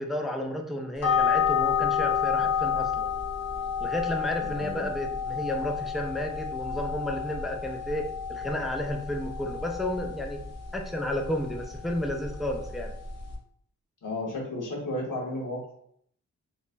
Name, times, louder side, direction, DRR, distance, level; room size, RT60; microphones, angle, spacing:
voice 1, 0.0-3.1 3.8-10.4 10.7-12.9, left 1 dB, ahead, 2 dB, 0.3 m, -32 dB
sound 1, 1.0-13.3, left 7 dB, 55° left, 0.9 m, -30 dB
voice 2, 4.4-4.9 14.0-15.8, left 1 dB, 90° left, -4 dB, 1.4 m, -33 dB
4.0 x 3.1 x 2.2 m, 0.63 s
wide cardioid pair, 165°, 31 cm